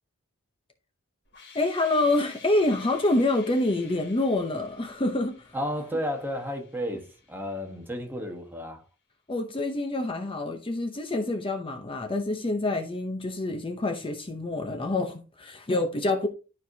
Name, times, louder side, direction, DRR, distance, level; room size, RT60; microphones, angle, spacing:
sound 1, 1.3-8.1, left 5 dB, 55° left, 2.6 m, -51 dB
voice 1, 1.5-5.5 9.3-16.3, left 2 dB, 25° left, 0.7 m, -27 dB
voice 2, 5.5-8.8, equal, 10° right, 1.2 m, -32 dB
11.5 x 4.6 x 2.7 m
head